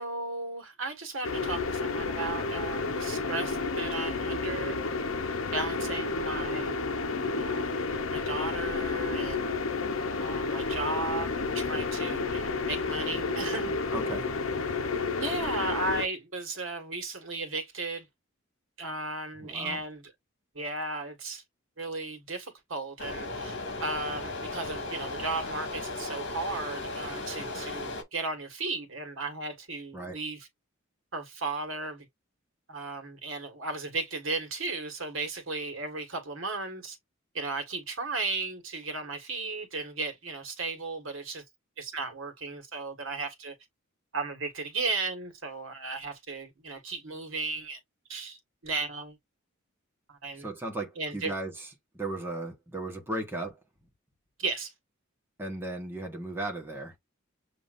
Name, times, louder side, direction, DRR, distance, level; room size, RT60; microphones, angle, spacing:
voice 1, 0.0-4.8 5.5-6.8 7.3-7.8 8.1-9.5 10.2-13.7 15.2-18.1 18.8-20.1 20.5-21.4 21.8-30.5 31.1-32.1 32.7-37.0 37.3-41.4 41.8-43.5 44.1-47.8 48.1-49.2 50.1-50.5 51.0-51.3 54.4-54.7, right 3 dB, 70° right, 1.6 m, -35 dB
sound 1, 1.2-16.1, left 3 dB, 80° left, 0.8 m, -31 dB
voice 2, 13.9-14.3 19.3-19.8 29.9-30.2 50.3-51.7 51.9-53.6 55.4-57.0, right 1 dB, 10° right, 1.3 m, -36 dB
sound 2, 23.0-28.0, left 2 dB, 60° left, 1.9 m, -36 dB
7.1 x 2.9 x 2.5 m
head